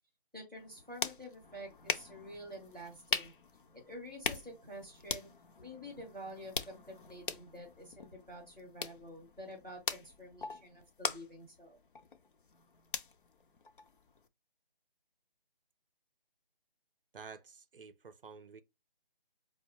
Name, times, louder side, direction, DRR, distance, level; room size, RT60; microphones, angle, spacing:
voice 1, 0.3-3.3 3.7-5.3 5.6-11.8, equal, ahead, 0.6 m, -49 dB
sound 1, 0.6-14.3, left 5 dB, 60° left, 0.6 m, -42 dB
voice 2, 17.1-18.6, right 5 dB, 65° right, 0.5 m, -51 dB
4.9 x 2.0 x 2.8 m
figure-of-eight pair, 155°, 29 cm